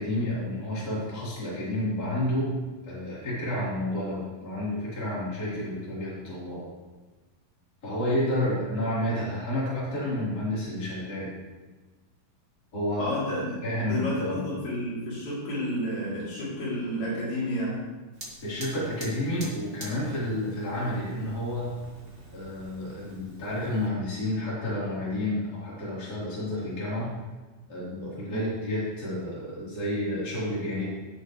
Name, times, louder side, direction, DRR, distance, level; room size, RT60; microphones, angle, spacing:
voice 1, 0.0-2.5 2.8-6.6 7.8-11.3 12.7-13.1 13.6-14.4 18.4-21.7 22.3-27.1 27.7-30.9, left 1 dB, 25° left, -8 dB, 4.0 m, -30 dB
voice 2, 13.0-13.5 13.9-17.8 28.3-28.4, equal, 70° left, -8 dB, 5.2 m, -31 dB
Fire, 18.1-23.9, right 1 dB, 25° right, 1.4 m, -46 dB
17.5 x 7.4 x 3.2 m, 1.2 s
omnidirectional pair, 4.4 m